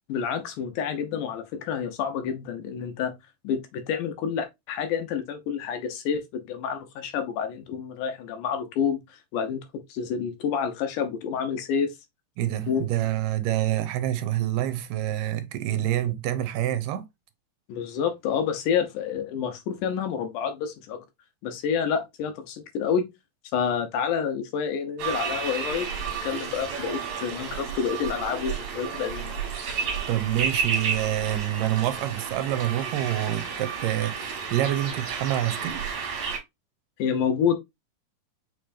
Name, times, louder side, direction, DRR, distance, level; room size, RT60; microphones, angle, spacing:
voice 1, 0.1-3.1 3.4-11.9 12.7-12.9 17.7-21.0 21.4-23.1 23.5-29.4 37.0-37.6, left 7 dB, 75° left, 2.1 m, -28 dB
voice 2, 12.4-17.1 30.1-35.8, right 13 dB, 85° right, 2.3 m, -27 dB
sound 1, 25.0-36.4, right 6 dB, 60° right, 2.4 m, -32 dB
6.7 x 3.1 x 2.5 m
omnidirectional pair, 3.9 m